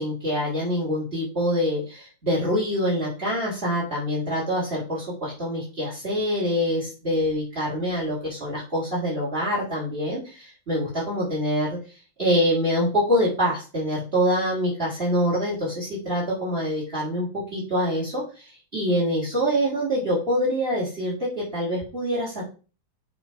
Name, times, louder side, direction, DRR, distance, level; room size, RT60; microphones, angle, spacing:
voice 1, 0.0-11.7 12.2-22.5, equal, 30° right, -6 dB, 3.7 m, -25 dB
7.9 x 3.5 x 5.3 m, 0.34 s
omnidirectional pair, 2.0 m